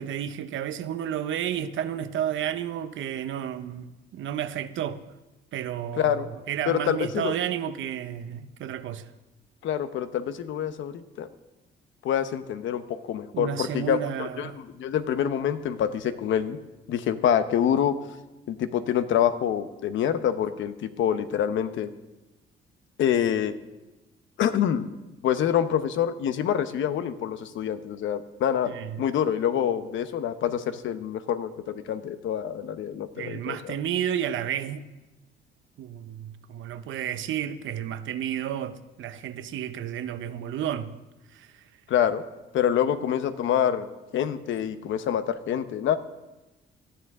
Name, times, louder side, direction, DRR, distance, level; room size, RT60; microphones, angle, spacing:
voice 1, 0.0-5.0 5.5-9.1 13.3-14.6 28.7-29.0 33.2-34.9 35.8-40.9 41.3-41.6, right 10 dB, 75° right, 0.9 m, -31 dB
voice 2, 5.9-6.3 6.7-7.3 9.6-11.3 12.0-14.5 14.8-16.6 16.9-18.0 18.5-21.9 23.0-23.5 24.4-24.9 25.2-33.7 41.9-42.2 42.5-43.9 44.1-46.0, left 9 dB, 75° left, 0.9 m, -26 dB
18.5 x 12.5 x 3.7 m
cardioid pair, 90°, 20 cm